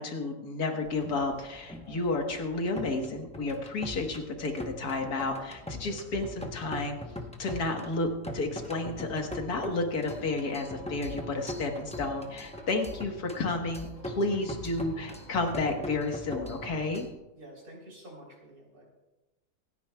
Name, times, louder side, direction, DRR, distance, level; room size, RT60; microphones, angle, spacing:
voice 1, 0.0-7.0 7.4-17.1, left 2 dB, 75° left, 3 dB, 1.9 m, -31 dB
sound 1, 0.8-17.1, left 1 dB, 5° left, 0.6 m, -42 dB
sound 2, 10.1-16.8 17.0-17.2, left 2 dB, 55° left, 3.0 m, -54 dB
voice 2, 17.3-18.8, right 1 dB, 60° right, -2 dB, 3.8 m, -49 dB
27.0 x 9.6 x 2.3 m, 1.0 s
omnidirectional pair, 1.7 m